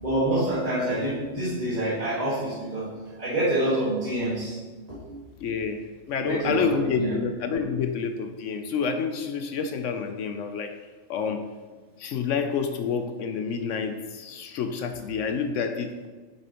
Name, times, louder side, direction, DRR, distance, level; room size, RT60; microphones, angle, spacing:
voice 1, 0.0-2.9 3.2-4.6 4.9-5.0 6.2-7.2, right 1 dB, 30° right, -10 dB, 1.8 m, -27 dB
voice 2, 5.4-10.7 11.1-11.4 12.0-16.1, left 6 dB, 75° left, 7 dB, 0.9 m, -28 dB
8.5 x 7.0 x 3.0 m, 1.4 s
omnidirectional pair, 1.4 m